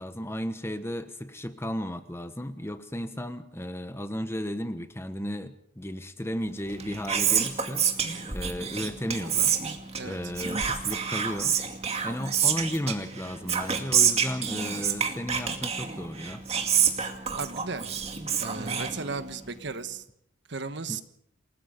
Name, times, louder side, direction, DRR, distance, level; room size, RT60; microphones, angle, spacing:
voice 1, 0.0-9.5 10.0-11.6 12.0-16.5 20.9-21.0, equal, 10° left, 10 dB, 1.1 m, -34 dB
Whispering, 6.6-19.5, right 7 dB, 30° right, 2.3 m, -28 dB
voice 2, 9.9-10.3 17.3-17.8 18.4-20.0 20.5-21.0, right 4 dB, 60° right, 10 dB, 1.4 m, -35 dB
28.5 x 18.5 x 5.2 m, 0.74 s
head